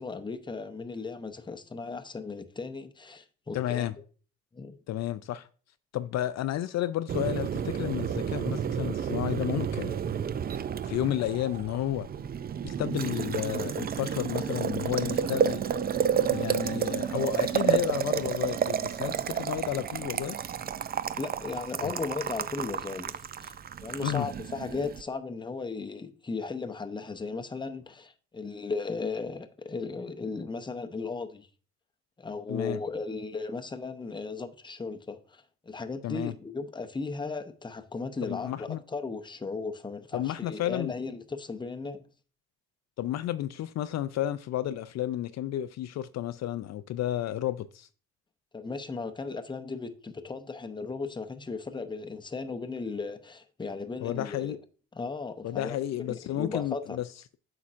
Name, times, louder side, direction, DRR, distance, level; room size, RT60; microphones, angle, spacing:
voice 1, 0.0-3.9 4.5-4.8 21.2-23.5 23.8-31.5 32.2-42.0 48.5-54.6 54.9-57.0, left 4 dB, 15° left, 0.7 m, -36 dB
voice 2, 3.5-4.0 4.9-5.5 5.9-9.9 10.9-12.1 12.6-15.6 16.3-20.4 21.8-21.9 24.0-24.3 32.5-32.8 36.0-36.3 38.2-38.8 40.1-40.9 43.0-47.9 54.0-54.6 55.4-57.1, left 12 dB, 60° left, 0.4 m, -32 dB
Boiling, 7.1-25.0, right 8 dB, 35° right, 0.4 m, -31 dB
sound 1, 14.1-19.0, right 5 dB, 90° right, 3.2 m, -50 dB
8.4 x 5.8 x 2.5 m
cardioid pair, 90°, 30 cm